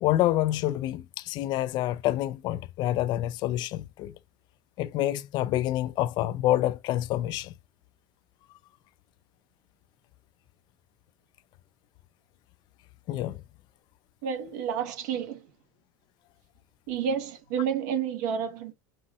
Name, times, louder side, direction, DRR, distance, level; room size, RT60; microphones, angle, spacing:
voice 1, 0.0-4.1 4.8-7.5 13.1-13.4, left 14 dB, 45° left, 0.4 m, -27 dB
voice 2, 14.2-15.4 16.9-18.7, right 7 dB, 70° right, 1.4 m, -30 dB
5.4 x 2.5 x 2.7 m
supercardioid pair, 130°, 10 cm